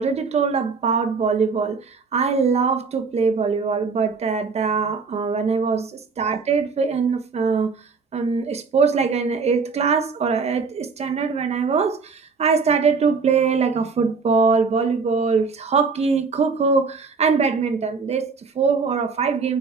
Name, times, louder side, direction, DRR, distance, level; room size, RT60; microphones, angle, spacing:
voice 1, 0.0-1.8 2.1-7.7 8.1-12.1 12.4-19.6, right 5 dB, 40° right, 1.3 m, -22 dB
9.0 x 4.2 x 3.7 m
cardioid pair, 110°, 17 cm